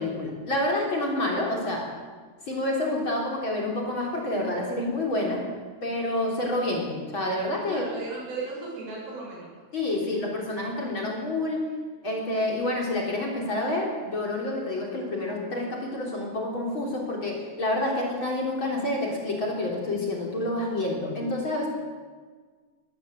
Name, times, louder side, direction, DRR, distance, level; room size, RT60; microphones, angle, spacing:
voice 1, 0.0-1.9 2.5-5.4 5.8-7.9 9.7-11.7 12.0-21.7, left 1 dB, 35° left, -1 dB, 4.1 m, -28 dB
voice 2, 7.7-9.5, right 3 dB, 80° right, -4 dB, 9.1 m, -36 dB
20.5 x 16.5 x 8.1 m, 1.5 s
omnidirectional pair, 4.3 m